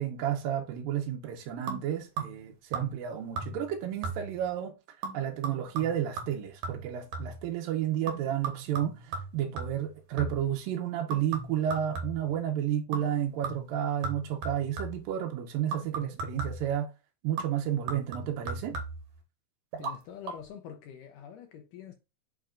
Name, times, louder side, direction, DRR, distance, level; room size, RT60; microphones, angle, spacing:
voice 1, 0.0-4.8 5.1-16.9 17.2-18.8, right 10 dB, 75° right, 2.3 m, -31 dB
sound 1, 1.7-2.5 2.7-3.1 3.4-3.7 4.0-4.5 5.0-7.5 8.1-10.5 11.1-12.4 12.9-13.2 13.4-15.1 15.7-16.7 17.4-19.1 19.7-20.0 20.2-20.3, right 4 dB, 60° right, 2.3 m, -37 dB
voice 2, 19.8-21.9, left 9 dB, 75° left, 2.0 m, -45 dB
7.4 x 5.6 x 2.5 m
omnidirectional pair, 4.4 m